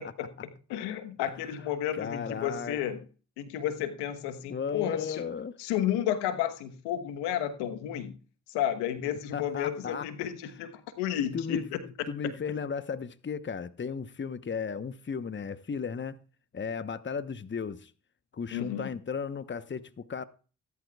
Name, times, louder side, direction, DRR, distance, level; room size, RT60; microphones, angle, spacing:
voice 1, 0.0-3.0 3.4-5.2 5.6-8.1 8.5-10.7 11.0-11.8 18.5-18.9, left 10 dB, 80° left, 1.2 m, -32 dB
voice 2, 1.9-2.8 4.5-5.6 9.3-10.1 11.3-11.6 12.1-16.2 16.5-17.9 18.3-20.2, left 6 dB, 30° left, 1.0 m, -35 dB
18.5 x 11.5 x 2.3 m
hypercardioid pair, 40°, 39 cm